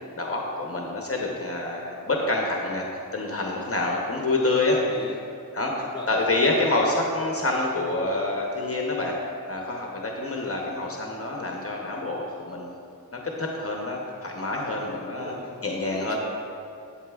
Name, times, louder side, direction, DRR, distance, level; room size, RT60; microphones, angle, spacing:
voice 1, 0.0-2.9 3.1-4.8 5.5-9.1 9.5-12.8 13.1-15.3 15.6-16.2, left 2 dB, 40° left, -1 dB, 0.8 m, -27 dB
voice 2, 4.7-5.2 5.8-6.7 15.2-15.5 15.8-16.2, left 2 dB, 15° left, -2 dB, 0.9 m, -39 dB
11.0 x 8.2 x 2.3 m, 2.6 s
wide cardioid pair, 115°, 35 cm